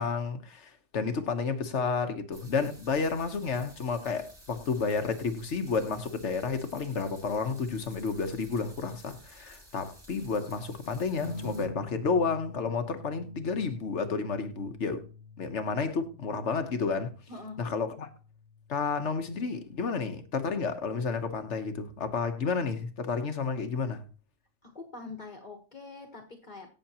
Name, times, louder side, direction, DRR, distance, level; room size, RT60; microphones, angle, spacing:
voice 1, 0.0-15.0 15.4-17.1 17.6-18.1 18.7-24.0, left 5 dB, 85° left, 1.4 m, -31 dB
sound 1, 2.3-11.6, equal, 90° right, 4.1 m, -53 dB
sound 2, 11.2-20.3 21.7-22.3, left 3 dB, 45° right, 5.8 m, -47 dB
voice 2, 17.3-17.6 24.6-26.7, left 3 dB, 40° left, 1.5 m, -44 dB
14.5 x 6.4 x 2.9 m
omnidirectional pair, 1.2 m